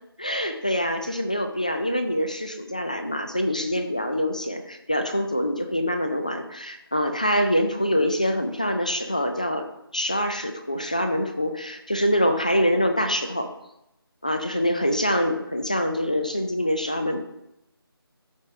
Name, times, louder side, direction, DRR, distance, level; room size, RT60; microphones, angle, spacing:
voice 1, 0.2-9.7 9.9-13.5 14.2-17.2, equal, 20° left, 6 dB, 0.4 m, -25 dB
13.0 x 5.0 x 3.2 m, 0.83 s
figure-of-eight pair, 170°, 13 cm